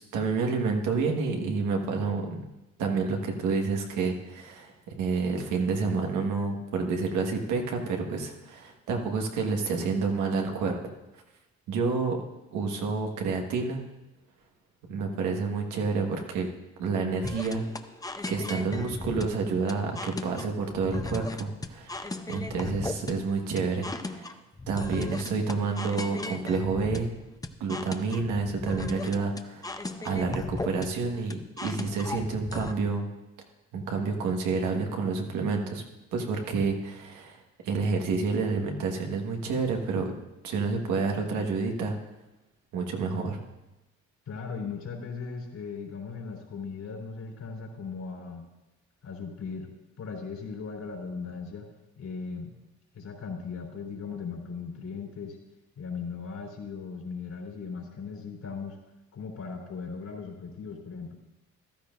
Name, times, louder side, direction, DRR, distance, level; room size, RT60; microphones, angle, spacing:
voice 1, 0.0-2.4 2.8-10.8 11.7-12.2 12.5-13.8 14.9-16.5 16.8-17.6 18.3-24.3 24.7-27.1 27.6-33.1 33.7-35.8 36.1-37.4 37.6-40.1 40.4-42.0 42.7-43.4, right 4 dB, 90° right, 2 dB, 1.6 m, -29 dB
sound 1, 17.2-32.7, left 2 dB, 10° left, 0.6 m, -37 dB
voice 2, 44.3-48.5 49.0-49.7 50.0-51.7 52.0-52.6 52.9-55.4 55.8-58.8 59.1-61.2, left 5 dB, 65° left, 0 dB, 3.5 m, -38 dB
14.5 x 12.5 x 2.6 m, 1.0 s
cardioid pair, 90°, 30 cm